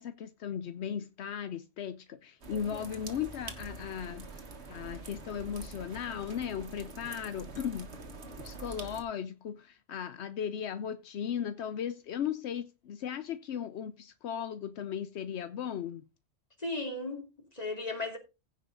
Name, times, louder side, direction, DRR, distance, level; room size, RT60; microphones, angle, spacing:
voice 1, 0.0-4.4 4.7-7.9 8.4-16.1, left 8 dB, 80° left, 0.9 m, -37 dB
sound 1, 2.4-9.0, right 3 dB, 75° right, 1.8 m, -45 dB
voice 2, 16.6-18.2, left 2 dB, 35° left, 2.9 m, -36 dB
16.0 x 5.5 x 3.8 m
omnidirectional pair, 1.1 m